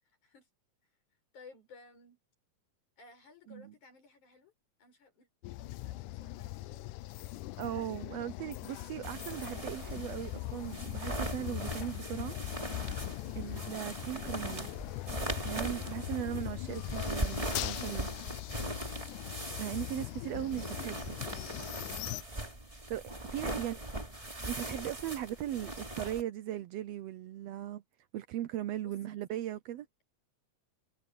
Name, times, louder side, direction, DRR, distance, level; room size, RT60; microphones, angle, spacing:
voice 1, 1.3-2.2 3.0-4.5 4.8-7.0 13.2-13.4 15.9-16.5 20.2-22.3 23.3-24.2 28.8-29.4, left 4 dB, 75° left, 7.8 m, -58 dB
sound 1, 5.4-22.2, left 17 dB, 90° left, 2.2 m, -41 dB
voice 2, 7.6-12.3 13.4-14.7 15.4-18.1 19.6-21.0 22.9-23.0 23.3-23.8 24.5-27.8 28.1-29.9, right 12 dB, 80° right, 1.5 m, -38 dB
sound 2, 9.0-26.2, right 1 dB, 10° right, 2.5 m, -40 dB
omnidirectional pair, 3.5 m